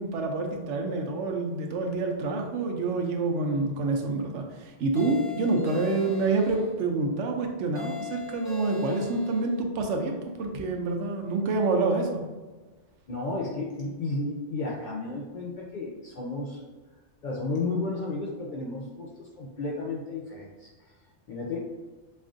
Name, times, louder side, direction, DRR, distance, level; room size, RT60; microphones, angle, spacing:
voice 1, 0.0-10.1 10.4-12.3, right 3 dB, 80° right, 3 dB, 0.9 m, -27 dB
sound 1, 5.0-6.7 7.8-9.5, left 5 dB, 25° left, 0.7 m, -40 dB
voice 2, 13.1-16.6 17.2-20.9 21.3-21.7, left 3 dB, 60° left, -3 dB, 0.5 m, -33 dB
5.2 x 2.4 x 2.5 m, 1.2 s
omnidirectional pair, 1.3 m